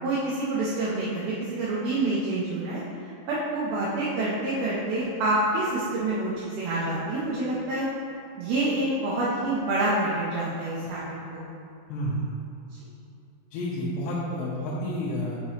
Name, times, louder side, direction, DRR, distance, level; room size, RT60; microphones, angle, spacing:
voice 1, 0.0-2.8 3.3-7.9 8.4-11.4, right 2 dB, 80° right, -7 dB, 2.2 m, -27 dB
voice 2, 11.9-12.3 13.5-15.4, equal, 85° left, -7 dB, 2.9 m, -30 dB
6.0 x 5.6 x 2.9 m, 2.6 s
omnidirectional pair, 5.1 m